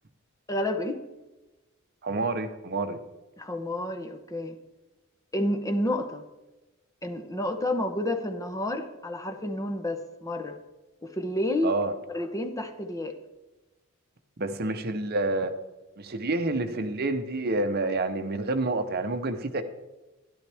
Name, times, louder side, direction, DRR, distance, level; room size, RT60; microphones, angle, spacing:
voice 1, 0.5-1.0 3.4-4.6 5.3-6.2 7.0-10.6 11.0-11.7 12.1-13.1, left 1 dB, 15° left, 6 dB, 0.9 m, -30 dB
voice 2, 2.0-3.0 11.6-11.9 14.4-15.5 16.0-19.6, right 2 dB, 45° right, 9 dB, 0.8 m, -28 dB
12.0 x 12.0 x 3.5 m, 1.1 s
head